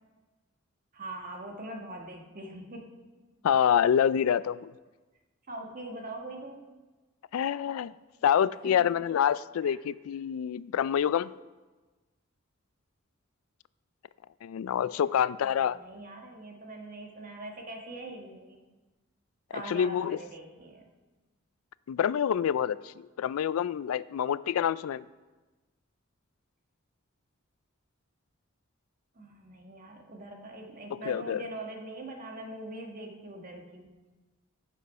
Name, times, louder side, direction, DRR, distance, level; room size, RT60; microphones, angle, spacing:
voice 1, 0.9-2.9 5.5-6.7 8.6-8.9 9.6-9.7 15.5-18.6 19.5-20.9 29.1-33.9, right 2 dB, 40° right, 2 dB, 1.5 m, -42 dB
voice 2, 3.4-4.7 7.3-7.9 8.2-11.3 14.4-15.8 19.7-20.2 21.9-25.0 31.0-31.4, left 8 dB, 85° left, 19 dB, 0.3 m, -27 dB
15.0 x 6.3 x 5.5 m, 1.2 s
head